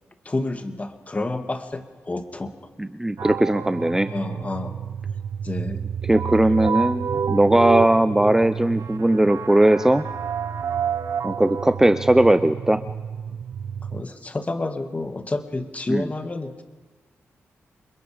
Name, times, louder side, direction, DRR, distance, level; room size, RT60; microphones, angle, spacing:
voice 1, 0.3-2.5 4.1-4.8 5.4-5.8 13.3-13.4 13.9-16.6, left 2 dB, 30° left, 6 dB, 2.2 m, -29 dB
voice 2, 2.8-4.1 6.1-10.0 11.2-12.8 15.9-16.1, right 1 dB, 10° right, 11 dB, 0.6 m, -19 dB
sound 1, 3.2-14.0, right 7 dB, 75° right, 0.6 m, -29 dB
28.0 x 22.0 x 5.2 m, 1.3 s
cardioid pair, 65°, 5 cm